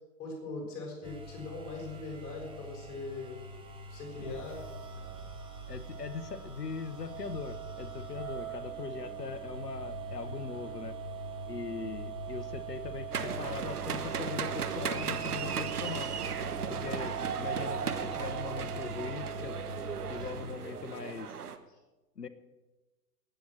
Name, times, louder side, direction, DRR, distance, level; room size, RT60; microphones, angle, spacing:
voice 1, 0.2-3.4 3.9-4.6 16.6-16.9, left 3 dB, 35° left, -1 dB, 6.1 m, -41 dB
sound 1, 1.0-20.6, right 4 dB, 10° right, 1.8 m, -41 dB
voice 2, 5.7-11.0 11.5-16.1 16.8-19.6 20.1-21.4 22.2-22.3, left 5 dB, 75° left, 14 dB, 1.0 m, -40 dB
sound 2, 13.1-21.6, right 7 dB, 65° right, 1.2 m, -36 dB
18.5 x 7.9 x 6.3 m, 1.1 s
figure-of-eight pair, 110°, 48 cm